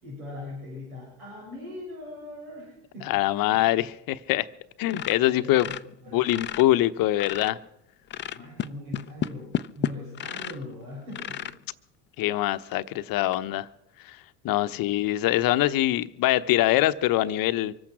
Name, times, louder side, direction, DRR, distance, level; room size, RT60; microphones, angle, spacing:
voice 1, 0.0-3.2 5.2-6.3 8.3-11.6 14.4-14.8, left 2 dB, 85° right, -3 dB, 6.7 m, -41 dB
voice 2, 3.1-4.5 4.8-5.7 6.1-7.6 12.2-13.7 14.0-14.2 14.4-17.7, left 15 dB, 50° left, 12 dB, 0.8 m, -24 dB
sound 1, 4.9-6.7 7.0-7.7 8.1-10.6 11.1-11.6 12.2-12.3 12.7-12.8 13.2-13.4, left 10 dB, 25° left, 0.5 m, -32 dB
24.0 x 8.7 x 6.0 m, 0.80 s
hypercardioid pair, 85°, 43 cm